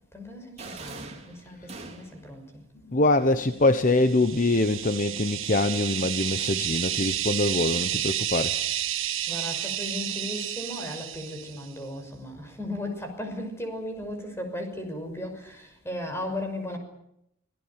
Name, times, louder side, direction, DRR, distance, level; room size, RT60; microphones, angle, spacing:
voice 1, 0.1-2.6 9.3-16.8, left 1 dB, 15° left, 6.1 m, -36 dB
sound 1, 0.6-2.3, right 3 dB, 30° right, 3.8 m, -42 dB
sound 2, 2.7-8.0, left 1 dB, 75° left, 4.6 m, -50 dB
voice 2, 2.9-8.6, left 2 dB, 40° left, 1.0 m, -24 dB
sound 3, 3.9-11.7, right 12 dB, 80° right, 1.5 m, -31 dB
25.5 x 18.5 x 8.9 m
head